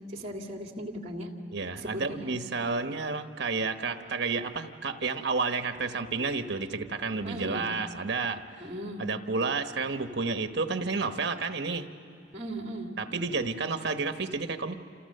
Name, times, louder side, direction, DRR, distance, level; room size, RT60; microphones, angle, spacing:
voice 1, 0.1-1.3 1.7-2.4 7.2-7.7 8.6-9.0 12.3-12.9, equal, 35° right, 3 dB, 2.3 m, -37 dB
voice 2, 1.5-8.7 9.0-11.9 13.0-14.8, right 4 dB, 60° right, 7 dB, 1.2 m, -31 dB
28.5 x 27.5 x 6.7 m, 2.5 s
head